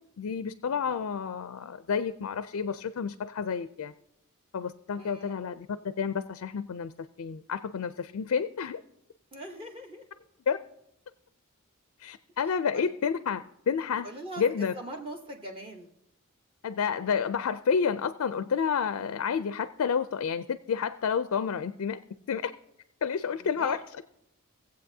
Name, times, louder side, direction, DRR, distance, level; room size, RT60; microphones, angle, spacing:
voice 1, 0.2-3.9 4.5-5.7 6.0-6.9 7.2-8.8 10.5-10.6 12.0-14.1 14.4-14.7 16.6-22.0 22.3-22.5 23.0-23.8, left 6 dB, 70° left, 12 dB, 0.4 m, -30 dB
voice 2, 5.0-5.4 9.3-10.1 12.4-12.9 14.0-15.9 23.4-23.8, right 1 dB, 25° right, 2 dB, 1.0 m, -41 dB
18.5 x 7.9 x 2.7 m, 0.79 s
head